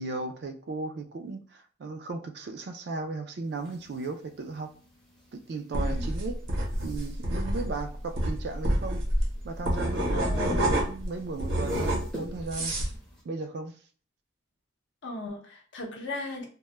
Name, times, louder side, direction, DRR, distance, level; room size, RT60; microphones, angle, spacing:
voice 1, 0.0-4.7 5.3-6.3 6.8-9.0 9.4-12.9 13.2-13.7, right 3 dB, 55° right, 0.3 m, -36 dB
sound 1, 3.4-13.2, right 1 dB, 5° left, 0.5 m, -51 dB
sound 2, 5.7-11.1 11.4-12.9, right 1 dB, 80° right, 0.9 m, -28 dB
voice 2, 10.1-10.7 15.0-16.5, left 2 dB, 65° left, 0.6 m, -37 dB
2.2 x 2.0 x 3.0 m
head